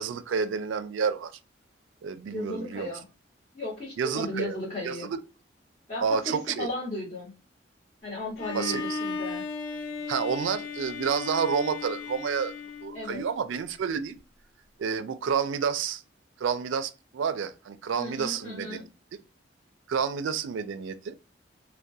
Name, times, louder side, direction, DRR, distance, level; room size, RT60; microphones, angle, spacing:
voice 1, 0.0-1.3 2.0-2.9 4.0-4.5 4.8-5.2 6.0-6.7 8.5-9.0 10.1-12.5 12.8-14.2 14.8-16.0 16.4-18.9 19.9-21.2, right 6 dB, 85° right, 0.3 m, -29 dB
voice 2, 2.3-3.0 3.5-5.1 5.9-7.3 8.0-9.4 12.9-13.2 18.0-18.8, left 2 dB, 35° left, 1.0 m, -35 dB
Bowed string instrument, 8.4-13.4, left 4 dB, 85° left, 0.4 m, -36 dB
2.2 x 2.1 x 2.6 m
head